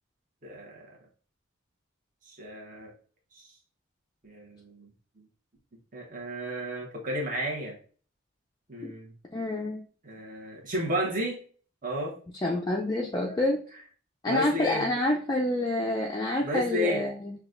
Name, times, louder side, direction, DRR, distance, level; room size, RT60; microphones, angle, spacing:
voice 1, 0.4-1.0 2.2-2.9 3.3-3.5 4.2-4.9 5.2-5.3 5.9-7.8 8.7-9.1 10.0-11.4 11.8-12.1 13.3-13.4 14.3-14.9 16.4-17.0, equal, 40° right, -2 dB, 1.0 m, -33 dB
voice 2, 9.3-9.8 12.4-13.6 14.2-17.3, left 1 dB, 20° left, -2 dB, 0.4 m, -27 dB
5.8 x 2.3 x 2.5 m, 0.42 s
head